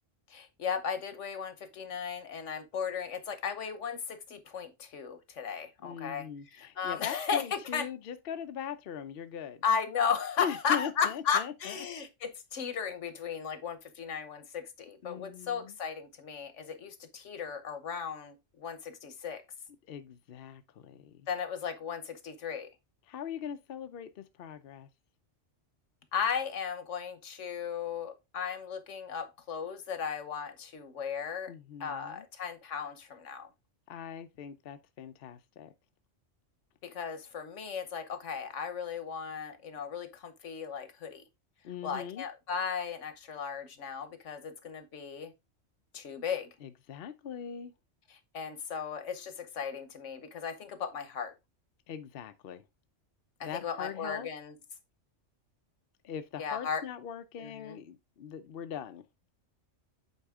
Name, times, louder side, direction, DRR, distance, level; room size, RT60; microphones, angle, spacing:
voice 1, 0.3-7.9 9.6-19.4 21.3-22.7 26.1-31.5 31.8-33.5 36.8-41.2 41.8-45.3 45.9-46.5 48.1-51.3 53.4-54.5 56.4-56.8 57.4-57.8, left 7 dB, 80° left, 1.3 m, -35 dB
voice 2, 5.8-9.6 10.4-11.8 15.0-15.8 19.9-21.3 23.1-24.9 31.5-32.3 33.9-35.7 41.6-42.2 46.6-47.7 51.9-52.6 53.4-54.3 56.0-59.0, left 8 dB, 60° left, 0.7 m, -41 dB
8.2 x 4.1 x 3.5 m
omnidirectional pair, 1.3 m